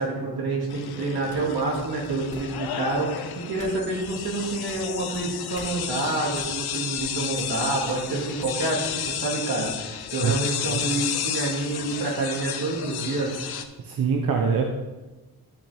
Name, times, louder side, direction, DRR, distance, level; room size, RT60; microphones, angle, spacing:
voice 1, 0.0-13.4, right 2 dB, 90° right, -2 dB, 2.4 m, -28 dB
sound 1, 0.7-13.6, left 9 dB, 80° left, 0.7 m, -32 dB
sound 2, 1.3-2.6 2.9-3.2 3.6-3.7 4.0-5.2 5.5-5.7 6.3-6.5 6.9-7.1 7.4-8.1 8.4-8.5 8.8-9.1 9.6-9.7 10.0-10.9, left 2 dB, 20° left, 2.8 m, -46 dB
voice 2, 13.8-14.6, right 6 dB, 65° right, 2 dB, 0.8 m, -24 dB
11.5 x 5.6 x 3.5 m, 1.1 s
wide cardioid pair, 155°, 37 cm